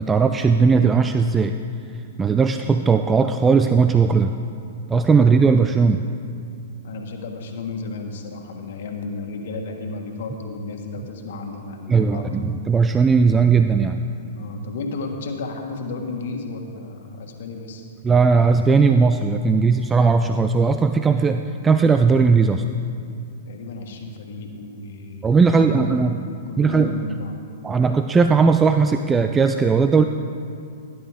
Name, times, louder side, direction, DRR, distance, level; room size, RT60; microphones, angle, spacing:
voice 1, 0.0-1.5 2.2-4.3 4.9-6.0 11.9-14.0 18.0-22.6 25.2-26.2 26.6-27.0 27.6-30.0, right 5 dB, 15° right, 8 dB, 0.4 m, -17 dB
voice 2, 6.8-12.6 14.2-17.9 23.4-27.4, left 3 dB, 65° left, 2 dB, 1.6 m, -33 dB
16.5 x 10.5 x 3.6 m, 2.4 s
hypercardioid pair, 115°, 0 cm